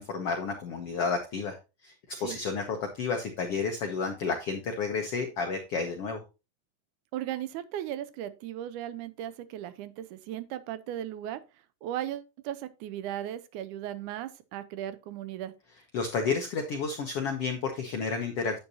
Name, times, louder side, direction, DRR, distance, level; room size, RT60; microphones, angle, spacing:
voice 1, 0.0-6.2 15.9-18.6, left 4 dB, 75° left, 1.4 m, -31 dB
voice 2, 7.1-11.4 11.8-15.5, right 12 dB, 75° right, 1.9 m, -37 dB
9.4 x 8.5 x 2.7 m
omnidirectional pair, 4.2 m